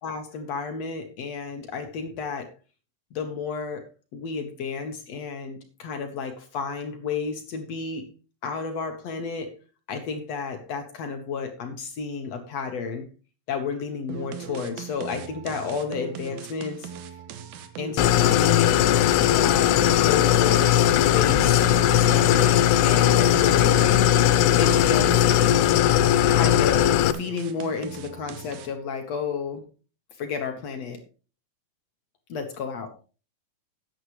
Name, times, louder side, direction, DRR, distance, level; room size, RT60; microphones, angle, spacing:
voice 1, 0.0-2.5 3.1-8.1 8.4-9.5 9.9-13.1 13.5-16.9 17.8-18.8 19.3-21.6 21.9-24.1 24.6-25.4 26.3-29.6 30.2-31.0 32.3-32.9, left 5 dB, 65° left, 5 dB, 1.7 m, -31 dB
sound 1, 14.1-28.9, right 9 dB, 75° right, 2.7 m, -40 dB
Idling, 18.0-27.1, left 11 dB, 85° left, 2.8 m, -19 dB
13.5 x 9.8 x 3.1 m, 0.34 s
omnidirectional pair, 4.7 m